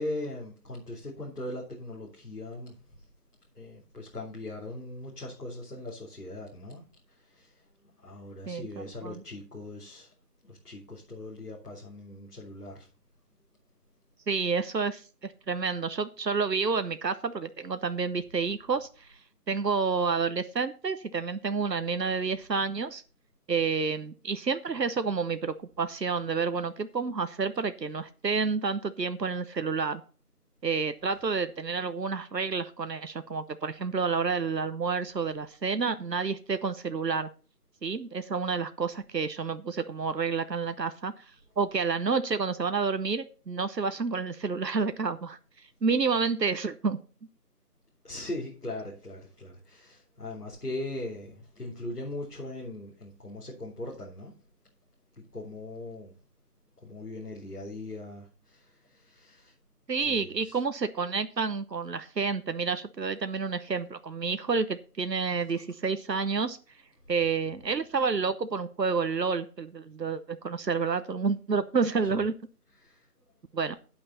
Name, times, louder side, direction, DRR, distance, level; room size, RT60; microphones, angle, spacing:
voice 1, 0.0-2.8 3.6-7.6 8.0-10.1 10.4-12.9 48.0-54.4 55.2-56.2 56.8-59.5 60.0-60.6 65.6-65.7 72.0-72.1 72.8-73.1, left 1 dB, 70° left, 3.8 m, -40 dB
voice 2, 8.5-9.2 14.3-19.2 19.5-23.0 23.5-30.0 30.6-37.3 37.8-47.0 59.9-66.6 67.1-72.3 73.5-73.8, right 5 dB, 85° right, 1.0 m, -29 dB
9.9 x 8.6 x 4.1 m
figure-of-eight pair, 170°, 48 cm